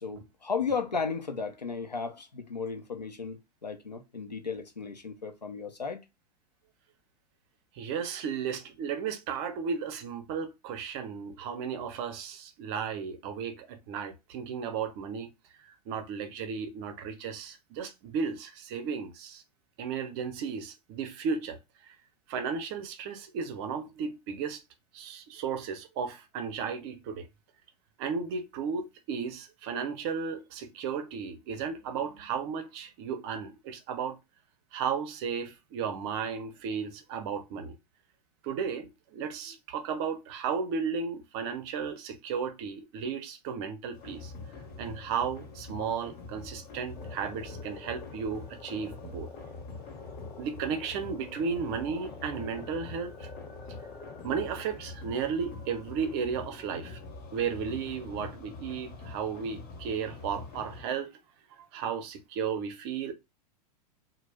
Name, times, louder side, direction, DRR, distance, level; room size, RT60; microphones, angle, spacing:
voice 1, 0.0-6.0, left 5 dB, 90° left, 0.6 m, -34 dB
voice 2, 7.7-15.3 15.9-19.4 19.8-21.9 22.3-24.6 24.9-27.3 28.0-34.2 34.7-37.8 38.4-44.3 44.8-49.3 50.4-53.3 54.2-57.0 57.3-61.1 61.6-63.1, right 6 dB, 40° right, 0.6 m, -34 dB
sound 1, 43.9-60.8, left 3 dB, 40° left, 0.8 m, -45 dB
sound 2, 47.0-54.7, left 4 dB, 15° left, 0.4 m, -48 dB
2.4 x 2.0 x 3.3 m
figure-of-eight pair, 95°, 21 cm